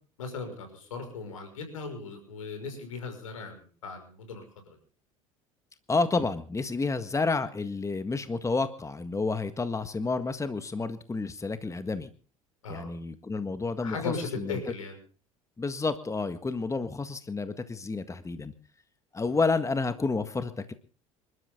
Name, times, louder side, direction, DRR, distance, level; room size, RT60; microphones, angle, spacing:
voice 1, 0.2-4.4 4.7-4.8 12.6-12.9 13.8-15.0, left 4 dB, 80° left, 6 dB, 6.0 m, -37 dB
voice 2, 5.9-12.1 12.7-14.6 15.6-18.5 19.1-20.7, left 3 dB, 20° left, 11 dB, 1.7 m, -30 dB
27.5 x 13.0 x 3.9 m, 0.40 s
hypercardioid pair, 65°, 17 cm